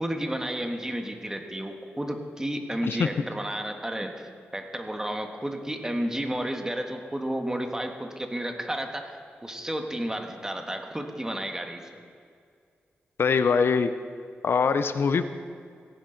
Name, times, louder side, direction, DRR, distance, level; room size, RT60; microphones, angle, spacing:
voice 1, 0.0-12.0, right 1 dB, 15° right, 4 dB, 1.5 m, -32 dB
voice 2, 13.2-13.9 14.4-15.2, left 5 dB, 65° left, 11 dB, 0.5 m, -23 dB
17.5 x 10.0 x 3.9 m, 2.2 s
cardioid pair, 65°, 4 cm